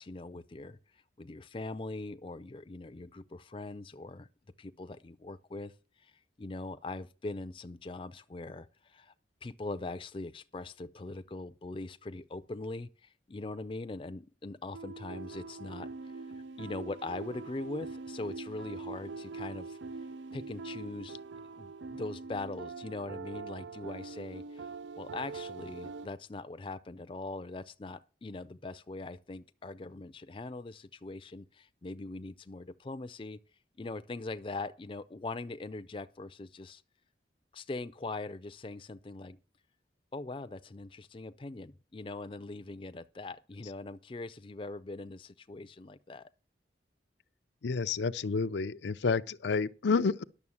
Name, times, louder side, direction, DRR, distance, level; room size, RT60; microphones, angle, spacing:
voice 1, 0.0-4.3 4.6-5.7 6.0-9.1 9.4-16.1 16.6-19.8 20.3-21.2 21.6-33.4 33.8-36.8 37.5-39.4 40.1-46.3, left 2 dB, 30° left, 0.5 m, -41 dB
sound 1, 14.7-26.1, right 4 dB, 90° right, 0.5 m, -43 dB
voice 2, 47.6-50.2, left 4 dB, 80° left, 0.5 m, -29 dB
11.0 x 6.9 x 7.1 m
head